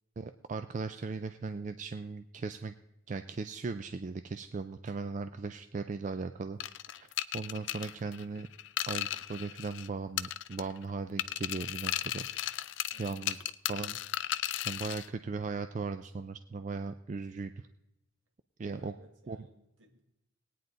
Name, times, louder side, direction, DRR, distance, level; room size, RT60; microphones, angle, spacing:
voice 1, 0.2-2.7 3.1-6.6 7.0-7.1 7.3-8.5 8.9-12.7 13.0-13.4 13.7-14.0 14.6-17.5 18.6-18.9 19.3-19.4, right 4 dB, 35° right, 9 dB, 0.3 m, -38 dB
sound 1, 6.6-9.9 10.2-10.8 11.2-15.1, left 12 dB, 60° left, 0.4 m, -36 dB
voice 2, 12.9-13.4 18.7-20.0, right 1 dB, 70° right, 4 dB, 1.7 m, -60 dB
19.0 x 9.3 x 3.9 m, 0.88 s
head